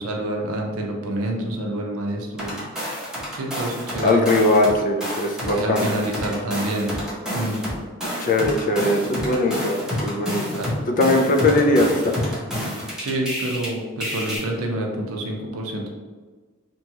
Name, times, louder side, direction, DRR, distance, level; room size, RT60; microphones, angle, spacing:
voice 1, 0.0-2.6 3.3-4.2 5.5-6.9 7.3-7.6 10.5-10.8 13.0-15.9, right 1 dB, 80° right, 1 dB, 0.5 m, -27 dB
sound 1, 2.4-4.7 5.0-13.7 14.0-14.4, equal, 5° right, 0.7 m, -29 dB
voice 2, 4.0-5.9 8.2-10.6 11.0-12.2, left 2 dB, 40° left, 3 dB, 0.3 m, -20 dB
2.9 x 2.3 x 2.7 m, 1.4 s
head